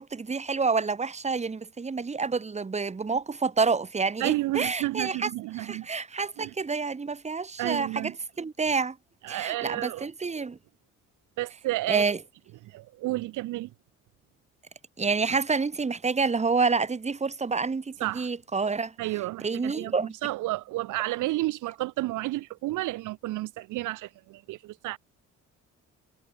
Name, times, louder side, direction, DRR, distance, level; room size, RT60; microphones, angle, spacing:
voice 1, 0.0-5.3 5.6-8.1 8.4-9.0 9.3-10.6 11.9-12.2 15.0-18.9 19.4-20.1, right 4 dB, 20° right, 1.2 m, -28 dB
voice 2, 4.2-5.9 6.4-6.5 7.6-8.2 9.2-10.1 11.4-12.1 12.6-13.7 18.0-18.3 19.0-25.0, right 18 dB, 85° right, 0.7 m, -31 dB
cardioid pair, 90°, 30 cm